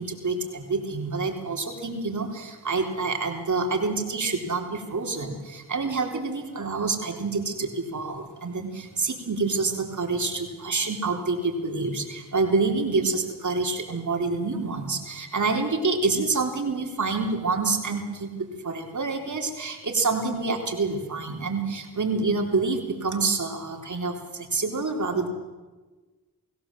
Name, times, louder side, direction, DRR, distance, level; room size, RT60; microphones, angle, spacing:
voice 1, 0.0-25.3, right 3 dB, 50° right, 3 dB, 3.8 m, -27 dB
23.5 x 16.5 x 7.6 m, 1.3 s
cardioid pair, 60°, 37 cm